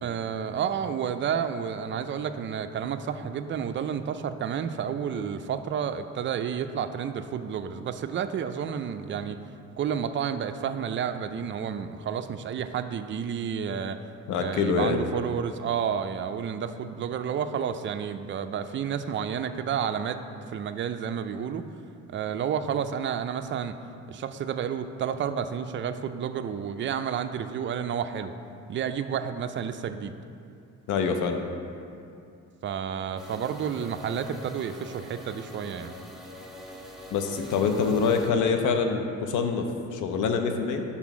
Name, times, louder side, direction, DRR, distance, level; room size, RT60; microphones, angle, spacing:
voice 1, 0.0-9.4 9.8-14.0 14.4-20.2 20.5-21.6 22.1-23.8 24.1-28.3 28.7-30.1 32.6-35.9, right 8 dB, 40° right, 9 dB, 0.4 m, -30 dB
voice 2, 14.3-15.0 30.9-31.4 37.1-40.8, left 5 dB, 85° left, 5 dB, 0.7 m, -25 dB
sound 1, 33.2-38.3, left 1 dB, ahead, 0.9 m, -44 dB
5.8 x 4.0 x 6.0 m, 2.5 s
cardioid pair, 90°, 30 cm